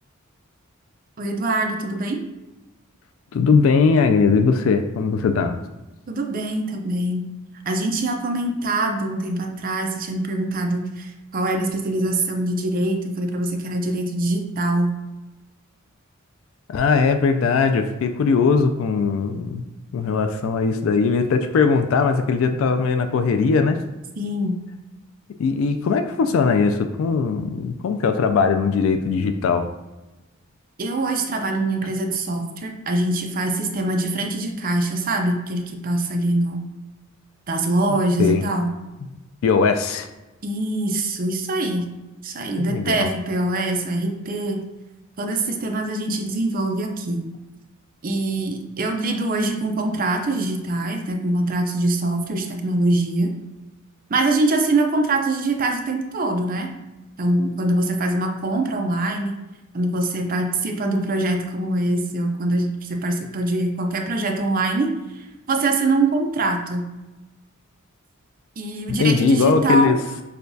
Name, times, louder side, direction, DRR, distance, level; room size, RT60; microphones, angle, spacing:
voice 1, 1.2-2.2 6.1-7.2 7.7-14.9 24.2-24.6 30.8-36.6 37.5-38.7 40.4-41.9 42.2-44.6 45.2-47.2 48.0-53.3 54.1-56.7 57.2-59.3 59.7-64.9 65.5-66.9 68.6-69.9, right 2 dB, 40° right, 3 dB, 0.5 m, -23 dB
voice 2, 3.3-5.6 16.7-19.6 19.9-23.8 25.4-29.6 38.2-38.4 39.4-40.1 42.6-43.1 69.0-70.0, left 5 dB, 70° left, 7 dB, 0.3 m, -19 dB
6.4 x 2.3 x 2.6 m, 1.0 s
head